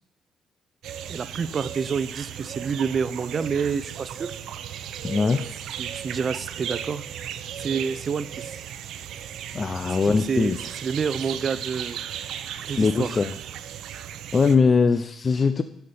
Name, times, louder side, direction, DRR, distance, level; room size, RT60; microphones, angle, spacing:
sound 1, 0.8-14.5, right 9 dB, 80° right, 0.7 m, -36 dB
voice 1, 1.1-4.3 5.8-7.0 7.6-8.6 9.8-12.0 12.7-13.2 14.0-14.1, right 6 dB, 45° right, 14 dB, 0.7 m, -28 dB
voice 2, 5.0-5.5 9.5-10.6 12.8-13.3 14.3-15.6, left 4 dB, 40° left, 9 dB, 0.6 m, -21 dB
13.0 x 5.8 x 7.0 m, 0.74 s
cardioid pair, 90°, 0 cm